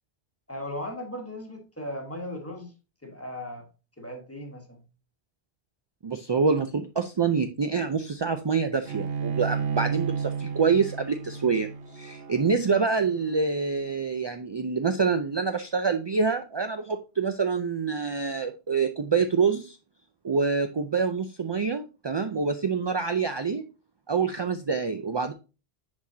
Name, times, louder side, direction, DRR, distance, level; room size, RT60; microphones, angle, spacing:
voice 1, 0.5-2.7 3.0-3.7 4.0-4.8, left 1 dB, 15° left, 1.4 m, -37 dB
voice 2, 6.0-11.7 11.9-19.8 20.2-23.6 24.1-25.3, right 5 dB, 40° right, 0.3 m, -26 dB
Bowed string instrument, 8.9-14.2, right 6 dB, 65° right, 1.0 m, -33 dB
6.1 x 5.9 x 2.7 m
omnidirectional pair, 1.1 m